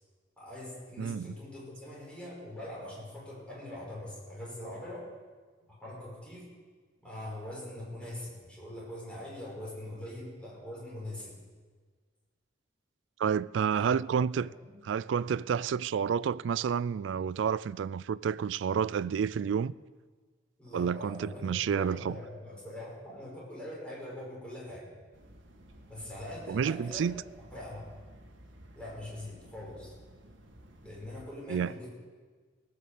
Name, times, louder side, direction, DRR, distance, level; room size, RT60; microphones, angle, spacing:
voice 1, 0.4-5.1 5.8-6.5 7.0-11.3 13.7-13.9 14.4-14.7 20.6-24.9 25.9-27.1 27.5-27.9 28.8-29.9 30.8-31.9, left 1 dB, 5° left, 5.8 m, -43 dB
voice 2, 1.0-1.3 13.2-14.5 14.9-19.7 20.7-22.1 26.5-27.1 31.5-31.7, right 7 dB, 70° right, 0.3 m, -30 dB
sound 1, 25.1-31.3, right 1 dB, 85° right, 1.8 m, -54 dB
18.5 x 6.8 x 8.4 m
head